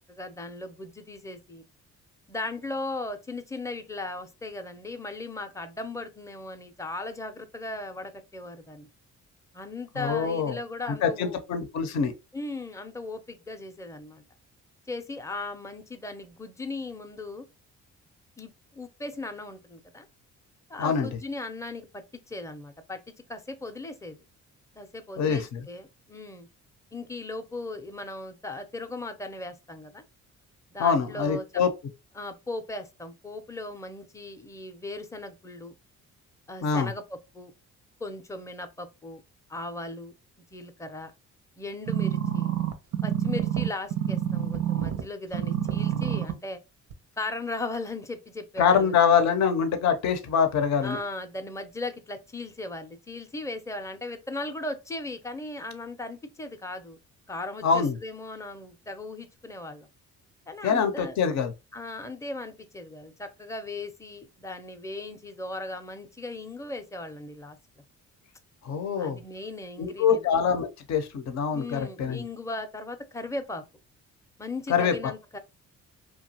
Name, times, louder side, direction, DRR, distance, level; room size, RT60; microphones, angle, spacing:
voice 1, 0.1-1.6 2.3-8.9 9.5-11.4 12.3-14.2 14.9-17.5 18.4-20.1 20.7-23.0 23.3-24.2 24.8-26.5 26.9-30.0 30.7-31.6 32.1-35.7 36.5-37.5 38.0-39.2 39.5-40.1 40.5-41.1 41.6-42.5 43.0-46.6 47.2-48.9 50.8-57.0 57.3-59.9 60.5-61.2 61.7-67.8 69.0-70.3 71.5-73.6 74.4-75.4, left 2 dB, 10° left, 0.5 m, -37 dB
voice 2, 10.0-10.6 10.9-12.1 20.8-21.1 25.2-25.6 30.8-31.7 36.6-36.9 48.6-51.0 57.6-58.0 60.6-61.5 68.6-69.2 69.8-72.2 74.7-74.9, left 6 dB, 65° left, 0.7 m, -24 dB
sound 1, 41.9-45.0 45.3-46.3 46.9-47.0, right 10 dB, 85° right, 0.6 m, -27 dB
2.8 x 2.2 x 2.8 m
cardioid pair, 90°, 30 cm